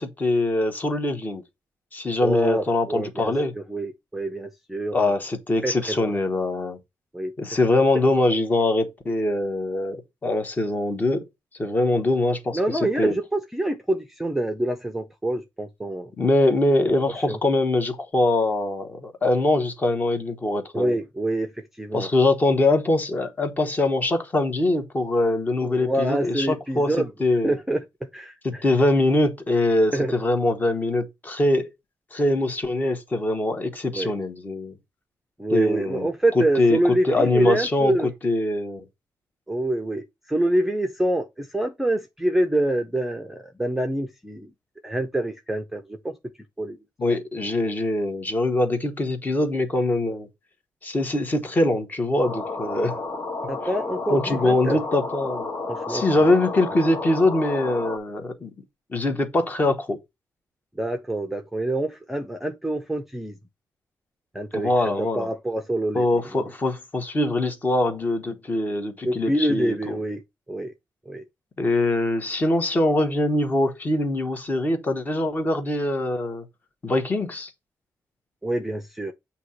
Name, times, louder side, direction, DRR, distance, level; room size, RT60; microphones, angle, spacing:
voice 1, 0.0-1.4 1.9-3.5 4.9-6.8 7.4-11.2 11.6-13.1 16.2-21.0 21.9-27.6 28.4-31.7 32.1-34.7 35.5-36.1 36.3-36.8 37.0-38.9 47.0-50.3 50.8-52.9 54.1-55.5 55.9-58.5 58.9-60.0 64.5-65.3 65.9-70.0 71.6-76.4 76.8-77.5, left 2 dB, 25° left, 1.2 m, -23 dB
voice 2, 2.2-3.3 3.7-5.1 5.6-6.2 7.1-7.3 12.5-16.1 17.3-17.4 20.7-22.1 25.6-27.1 27.4-27.8 28.1-28.7 29.9-30.1 33.9-34.1 35.4-38.1 39.5-44.5 44.8-46.2 46.6-46.8 53.5-54.8 55.7-56.2 60.8-63.3 64.3-66.1 66.3-66.5 69.1-70.2 70.5-70.7 71.1-71.3 78.4-79.1, right 1 dB, 5° right, 0.6 m, -26 dB
sound 1, 52.2-58.0, left 3 dB, 45° left, 1.4 m, -31 dB
7.9 x 2.9 x 5.6 m
wide cardioid pair, 165°, 7 cm